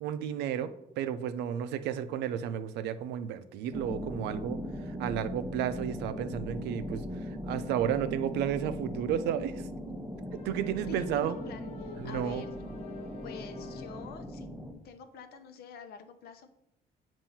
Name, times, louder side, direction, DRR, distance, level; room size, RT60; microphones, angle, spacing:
voice 1, 0.0-4.6 4.9-7.1 7.5-9.7 10.4-11.4 12.0-12.5, right 9 dB, 85° right, 11 dB, 0.5 m, -32 dB
sound 1, 3.7-14.7, equal, ahead, 0.7 m, -39 dB
sound 2, 10.3-14.3, left 4 dB, 40° left, 1.0 m, -47 dB
voice 2, 10.9-12.6 13.2-14.5 14.8-16.5, left 5 dB, 70° left, 8 dB, 0.7 m, -47 dB
7.3 x 2.7 x 5.5 m, 0.87 s
cardioid pair, 110°, 17 cm